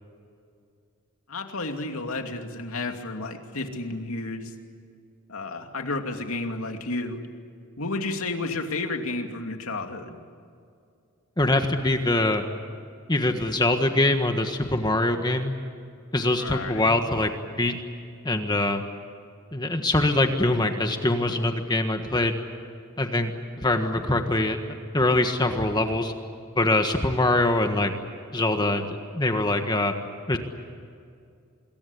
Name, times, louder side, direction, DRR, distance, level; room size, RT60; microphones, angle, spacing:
voice 1, 1.3-4.5 5.3-7.3 7.8-10.2 16.4-16.9, left 2 dB, 75° left, 4 dB, 2.6 m, -31 dB
voice 2, 11.4-12.4 13.1-15.5 16.1-17.3 17.6-17.8 18.2-18.8 19.5-22.4 23.0-23.3 23.6-26.1 26.5-27.9 28.3-28.8 29.1-29.9 30.3-30.4, left 2 dB, 20° left, 6 dB, 1.5 m, -23 dB
26.5 x 22.5 x 8.6 m, 2.3 s
head